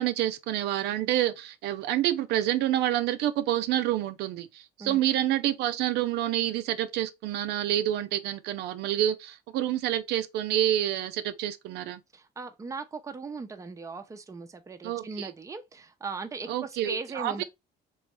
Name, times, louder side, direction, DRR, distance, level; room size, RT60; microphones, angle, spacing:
voice 1, 0.0-12.0 14.8-15.3 16.5-17.4, right 12 dB, 80° right, 0.4 m, -28 dB
voice 2, 12.1-17.4, right 4 dB, 20° right, 0.6 m, -38 dB
3.3 x 3.1 x 3.0 m
cardioid pair, 110°, 17 cm